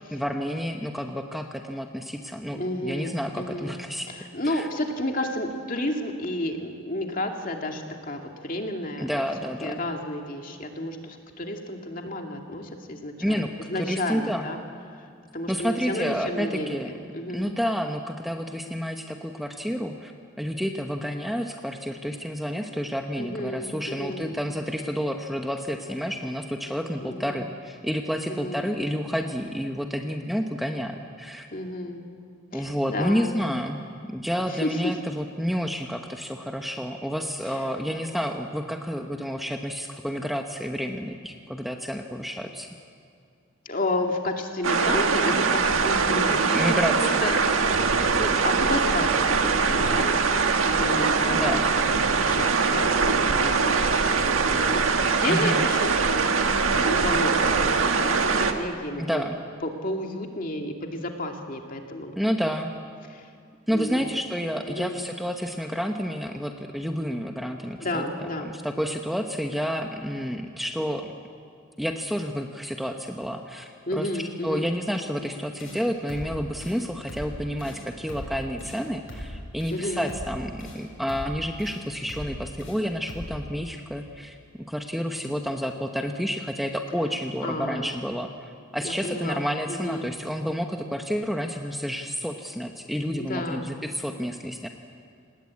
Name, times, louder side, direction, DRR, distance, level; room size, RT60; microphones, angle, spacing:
voice 1, 0.1-4.1 4.4-4.7 9.0-9.8 13.2-13.5 13.7-14.5 15.5-16.9 17.3-20.1 20.4-31.5 32.5-33.8 34.1-42.7 46.3-47.2 51.3-51.7 55.3-55.6 59.0-59.4 62.2-62.7 63.7-68.0 68.5-71.1 71.8-94.7, equal, ahead, 3 dB, 1.0 m, -30 dB
voice 2, 2.5-9.1 9.6-14.6 14.9-17.5 23.2-24.3 27.0-27.3 28.3-28.7 31.5-32.1 32.5-33.4 34.5-34.9 37.5-37.6 43.7-50.3 50.7-51.6 51.8-54.6 55.0-55.9 56.2-59.2 59.6-62.2 63.1-63.3 63.7-64.1 64.6-65.0 67.8-68.5 73.9-74.7 79.7-80.1 87.4-87.9 88.8-89.4 89.7-90.1 93.1-93.7, left 1 dB, 40° left, 3 dB, 2.4 m, -32 dB
sound 1, 44.6-58.5, right 4 dB, 85° right, 1.7 m, -22 dB
sound 2, 75.6-75.8 76.1-76.3 76.6-76.8 77.1-77.3 77.6-77.8 78.1-78.3 78.6-78.8 79.1-79.3 79.6-79.8 80.1-80.3 80.6-80.8 81.1-81.3 81.6-81.8 82.1-82.3 82.6-82.8 83.1-83.3, equal, 75° left, 7.6 m, -39 dB
28.5 x 19.5 x 8.6 m, 2.2 s
head